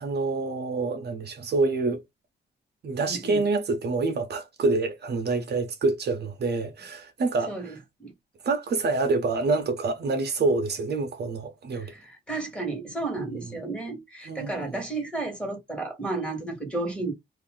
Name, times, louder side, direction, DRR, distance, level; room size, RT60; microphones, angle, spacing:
voice 1, 0.0-2.0 2.8-7.8 8.4-11.9 13.2-13.4 14.2-14.7, right 3 dB, 60° right, 0.8 m, -27 dB
voice 2, 3.1-3.4 7.5-7.7 8.0-8.1 11.7-17.1, right 2 dB, 5° left, 1.5 m, -32 dB
2.8 x 2.6 x 3.7 m
wide cardioid pair, 130°, 19 cm